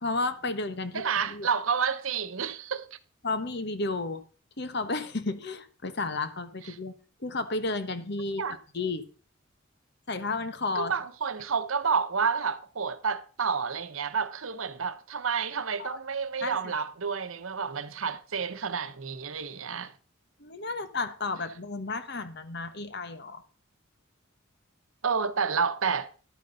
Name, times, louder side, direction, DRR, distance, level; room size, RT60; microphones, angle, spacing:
voice 1, 0.0-1.5 3.2-4.2 4.6-6.9 7.2-8.4 8.7-9.0 10.1-10.9 15.8-16.0 16.4-16.7 20.4-23.4, left 3 dB, 55° left, 1.2 m, -32 dB
voice 2, 0.9-3.0 8.4-8.6 10.8-19.9 25.0-26.1, right 6 dB, 80° right, 0.9 m, -30 dB
11.5 x 9.3 x 4.0 m
head